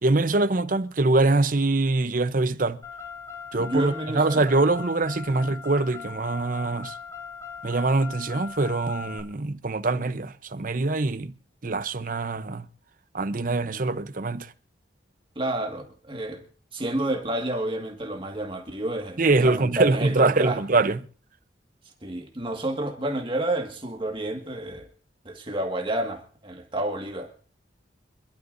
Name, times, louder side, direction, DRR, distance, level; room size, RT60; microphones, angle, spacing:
voice 1, 0.0-2.8 3.5-6.9 7.6-11.3 11.6-12.7 13.1-14.5 19.2-21.0, right 3 dB, 50° right, 0.8 m, -24 dB
Car, 2.8-9.2, left 6 dB, 15° left, 2.2 m, -40 dB
voice 2, 3.5-4.5 5.3-5.5 13.7-13.8 15.4-16.4 16.7-20.6 22.0-24.9 25.3-27.3, right 1 dB, 30° right, 1.9 m, -30 dB
26.0 x 12.5 x 2.7 m
head